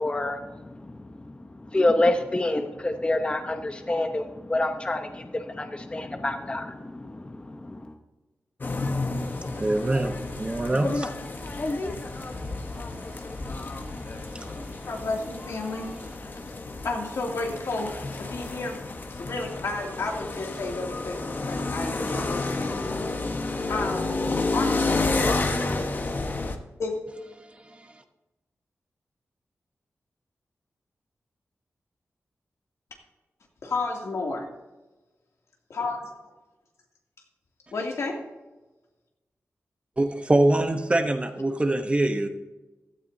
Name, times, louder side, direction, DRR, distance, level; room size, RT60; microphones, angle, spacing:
voice 1, 0.0-7.9, left 2 dB, 20° left, 6 dB, 0.9 m, -28 dB
sound 1, 8.6-26.6, left 3 dB, 40° left, 1.1 m, -30 dB
voice 2, 9.6-11.1 14.4-14.5 40.0-42.3, right 2 dB, 25° right, 6 dB, 1.0 m, -24 dB
voice 3, 14.9-15.9 16.8-18.8 19.2-22.7 23.7-24.2 24.5-25.1 26.8-26.9 33.6-34.4 35.7-36.1 37.7-38.2, left 3 dB, 85° left, 0 dB, 2.6 m, -31 dB
15.5 x 13.0 x 2.7 m, 1.1 s
wide cardioid pair, 110°, 5 cm